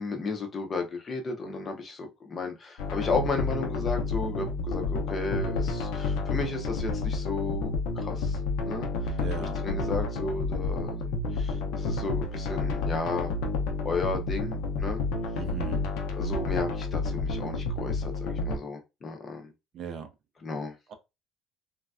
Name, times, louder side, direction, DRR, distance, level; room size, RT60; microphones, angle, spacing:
voice 1, 0.0-8.4 8.6-13.3 13.8-15.0 16.2-19.5 20.4-20.8, left 4 dB, 25° left, 0.5 m, -34 dB
sound 1, 2.8-18.6, left 3 dB, 85° left, 0.6 m, -30 dB
voice 2, 9.2-9.6 15.4-15.8 19.7-20.1 20.9-21.0, right 7 dB, 40° right, 0.4 m, -38 dB
3.1 x 2.3 x 2.4 m
cardioid pair, 175°, 0 cm